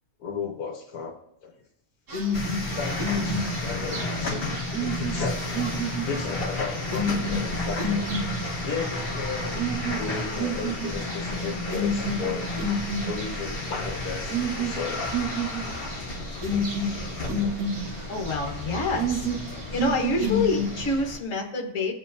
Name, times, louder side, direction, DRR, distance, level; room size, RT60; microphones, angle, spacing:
voice 1, 0.2-1.2 1.4-1.5 2.7-4.5 4.8-8.1 8.6-9.7 9.9-12.5 13.1-15.1, left 5 dB, 85° left, 3 dB, 1.6 m, -34 dB
sound 1, 2.1-20.9, right 1 dB, 90° right, 2.5 m, -31 dB
sound 2, 2.3-21.2, left 2 dB, 40° left, 1.4 m, -32 dB
voice 2, 18.1-19.3 19.7-21.9, left 3 dB, 55° left, 1 dB, 1.8 m, -27 dB
18.5 x 7.4 x 2.7 m, 0.74 s
omnidirectional pair, 1.6 m